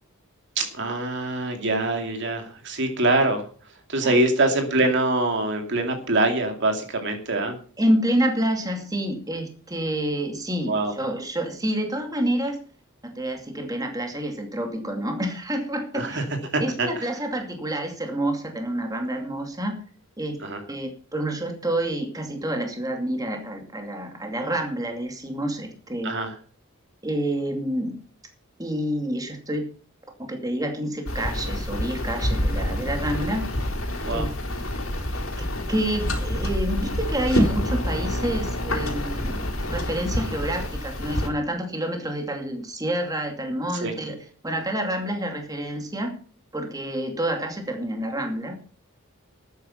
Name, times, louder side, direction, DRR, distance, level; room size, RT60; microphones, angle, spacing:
voice 1, 0.6-3.5 3.9-7.6 10.6-10.9 15.9-16.2 16.5-17.1 20.4-20.6 26.0-26.3 34.0-34.3 43.8-43.9, right 2 dB, 55° right, 5 dB, 2.4 m, -24 dB
voice 2, 7.8-12.6 13.0-16.2 16.6-19.8 20.2-20.4 20.7-26.1 27.0-28.0 28.6-29.6 30.2-33.5 34.1-34.3 35.4-44.2 44.4-46.1 46.5-48.6, right 1 dB, 15° right, 4 dB, 2.4 m, -28 dB
sound 1, 31.1-41.3, left 1 dB, 65° left, 3.7 m, -27 dB
13.0 x 9.5 x 5.7 m, 0.43 s
head